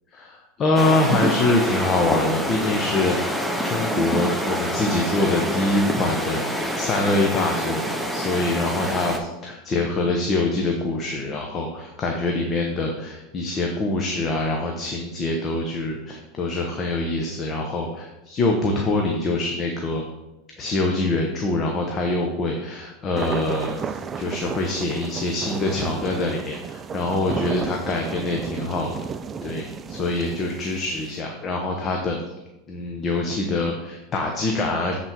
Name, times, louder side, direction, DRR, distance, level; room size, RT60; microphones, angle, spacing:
voice 1, 0.1-20.0 20.6-28.9 29.4-32.2 32.7-34.9, left 2 dB, 35° left, 1 dB, 1.0 m, -25 dB
sound 1, 0.8-9.2, equal, ahead, 1.0 m, -26 dB
sound 2, 23.2-31.2, right 6 dB, 30° right, 0.4 m, -33 dB
7.7 x 4.2 x 4.6 m, 1.0 s
hypercardioid pair, 95°, 0 cm